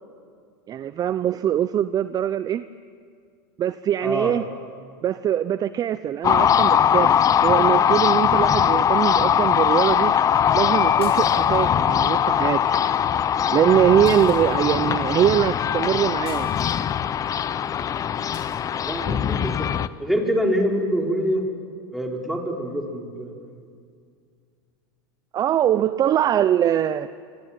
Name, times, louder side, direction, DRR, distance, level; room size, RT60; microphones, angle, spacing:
voice 1, 0.7-2.6 3.6-4.4 5.0-7.1 7.4-10.1 10.5-12.6 13.5-16.5 25.3-27.1, right 10 dB, 30° right, 14 dB, 0.7 m, -22 dB
voice 2, 4.0-4.3 18.9-19.7 20.0-21.4 21.9-23.6, equal, ahead, 0 dB, 4.7 m, -25 dB
sound 1, 6.2-19.9, left 9 dB, 25° left, 0.8 m, -21 dB
sound 2, 11.0-11.7 14.0-14.8 16.2-16.8 18.3-18.6, left 5 dB, 90° left, 7.2 m, -45 dB
25.0 x 25.0 x 9.1 m, 2.2 s
hypercardioid pair, 115°, 13 cm